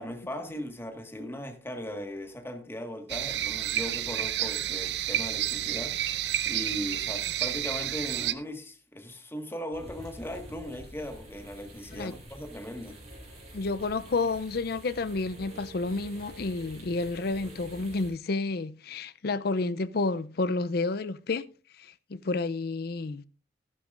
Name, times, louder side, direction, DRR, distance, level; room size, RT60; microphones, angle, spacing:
voice 1, 0.0-13.0, equal, 15° left, 1.6 m, -38 dB
sound 1, 3.1-8.3, right 12 dB, 70° right, 0.6 m, -30 dB
sound 2, 9.7-18.1, right 1 dB, 40° right, 6.9 m, -47 dB
voice 2, 13.5-21.5 21.8-23.2, left 3 dB, 60° left, 0.5 m, -30 dB
14.5 x 12.0 x 2.5 m
head